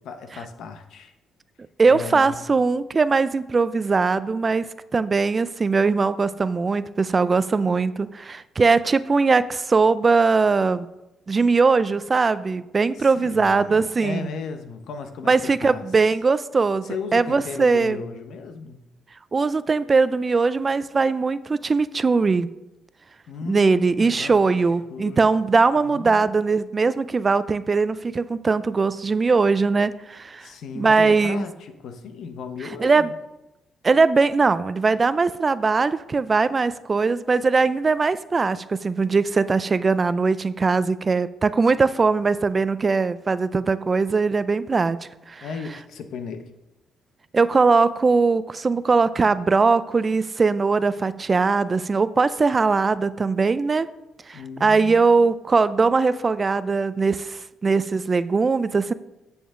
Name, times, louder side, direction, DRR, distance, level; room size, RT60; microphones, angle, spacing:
voice 1, 0.0-1.1 1.8-2.4 13.0-15.8 16.8-18.8 23.3-24.6 24.9-25.3 25.7-26.3 30.4-33.1 45.4-46.5 54.3-55.2, left 5 dB, 75° left, 8 dB, 0.9 m, -35 dB
voice 2, 1.8-10.9 11.3-14.3 15.3-18.0 19.3-22.5 23.5-30.5 30.8-31.5 32.8-33.1 33.8-45.4 47.3-53.9 54.3-58.9, right 4 dB, 30° right, 15 dB, 0.4 m, -20 dB
9.0 x 6.9 x 3.7 m, 0.92 s
cardioid pair, 90°, 0 cm